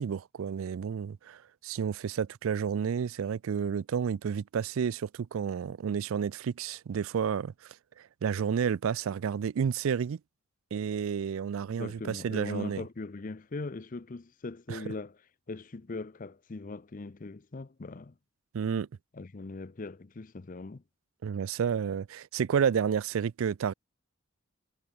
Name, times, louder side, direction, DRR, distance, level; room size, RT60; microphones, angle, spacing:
voice 1, 0.0-7.7 8.2-10.2 10.7-12.8 14.7-14.8 18.5-18.9 21.2-23.7, right 7 dB, 75° right, 0.4 m, -31 dB
voice 2, 11.8-15.2 15.5-18.1 19.1-20.8, left 3 dB, 40° left, 0.6 m, -40 dB
head